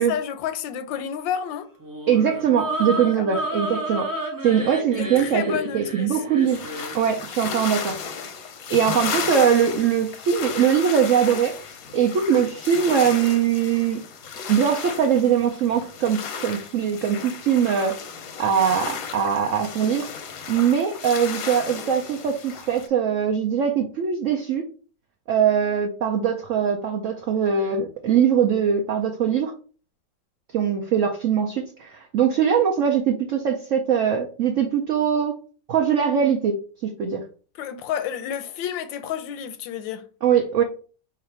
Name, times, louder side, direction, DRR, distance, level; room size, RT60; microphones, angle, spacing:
voice 1, 0.0-1.7 3.2-3.3 5.0-6.2 37.6-40.0, left 9 dB, 85° left, 1.3 m, -30 dB
sound 1, 1.8-7.1, right 1 dB, 30° right, 0.3 m, -31 dB
voice 2, 2.1-4.1 4.4-6.7 6.9-8.0 8.7-14.0 14.5-18.0 18.4-20.1 20.5-24.6 25.3-29.5 30.5-35.4 35.7-37.2 40.2-40.6, right 8 dB, 80° right, 0.7 m, -22 dB
sound 2, 6.5-22.9, left 6 dB, 65° left, 1.0 m, -34 dB
4.8 x 2.5 x 4.3 m
omnidirectional pair, 2.0 m